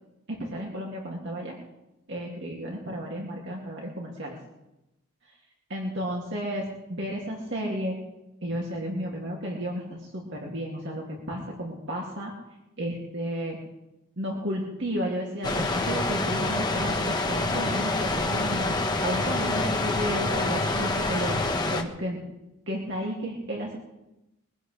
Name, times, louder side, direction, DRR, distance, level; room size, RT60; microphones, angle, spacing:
voice 1, 0.3-1.6 2.1-4.4 5.7-8.0 8.4-12.3 12.8-13.6 14.2-21.4 21.7-22.2 22.7-23.8, equal, 55° right, -2 dB, 2.5 m, -32 dB
sound 1, 15.4-21.8, left 2 dB, 20° left, 1.3 m, -27 dB
23.0 x 16.0 x 3.4 m, 0.95 s
head